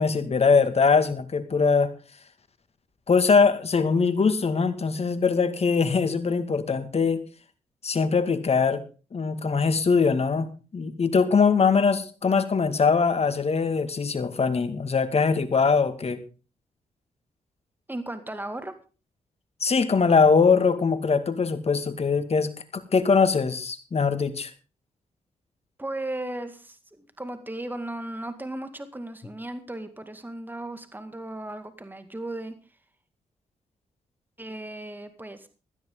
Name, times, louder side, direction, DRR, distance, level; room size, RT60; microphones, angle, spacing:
voice 1, 0.0-1.9 3.1-7.2 7.8-8.8 9.1-16.2 19.6-24.5, left 5 dB, 50° left, 10 dB, 2.1 m, -22 dB
voice 2, 17.9-18.7 25.8-32.5 34.4-35.5, right 1 dB, 15° right, 9 dB, 2.3 m, -36 dB
16.0 x 14.0 x 3.9 m, 0.35 s
supercardioid pair, 45°, 14 cm